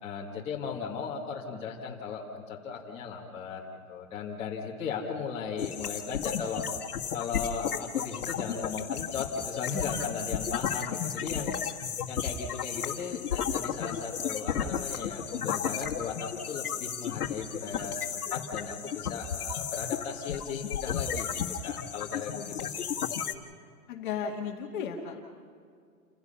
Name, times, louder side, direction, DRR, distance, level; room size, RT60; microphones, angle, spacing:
voice 1, 0.0-3.6 3.9-6.6 7.1-11.5 12.1-21.3 21.6-22.9, left 6 dB, 15° left, -5 dB, 2.1 m, -37 dB
sound 1, 5.6-23.3, left 8 dB, 85° left, 1.8 m, -34 dB
voice 2, 22.3-22.7 23.9-25.2, left 7 dB, 35° left, 1 dB, 2.2 m, -35 dB
29.5 x 16.0 x 5.7 m, 2.2 s
hypercardioid pair, 165°, 43 cm